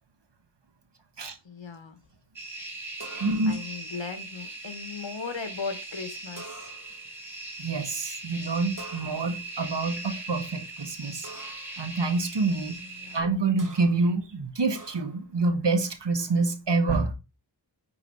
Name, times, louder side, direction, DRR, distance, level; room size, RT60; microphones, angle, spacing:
voice 1, 1.4-2.0 3.4-6.7 12.8-13.3, left 5 dB, 70° left, 1.4 m, -38 dB
sound 1, 2.4-13.2, right 2 dB, 5° right, 2.7 m, -40 dB
sound 2, 3.0-3.7 6.4-7.1 8.8-9.5 11.2-11.8 13.6-14.1 14.7-15.3, right 2 dB, 45° right, 1.8 m, -45 dB
voice 2, 3.2-3.6 7.6-11.3 11.8-12.7 13.1-17.1, right 3 dB, 60° right, 1.3 m, -27 dB
9.7 x 3.7 x 4.8 m
wide cardioid pair, 65°, 46 cm